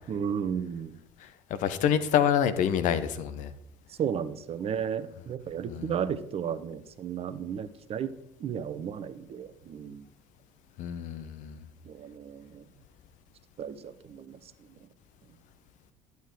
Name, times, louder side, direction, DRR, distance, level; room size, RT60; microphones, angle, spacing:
voice 1, 0.1-0.9 3.9-8.1 8.4-10.1 11.8-12.7 13.6-14.4, right 8 dB, 40° right, 13 dB, 1.0 m, -34 dB
voice 2, 1.6-3.5 5.7-5.9 10.8-11.6, left 9 dB, 55° left, 12 dB, 1.1 m, -27 dB
11.5 x 8.2 x 4.7 m, 0.77 s
figure-of-eight pair, 65°, 15 cm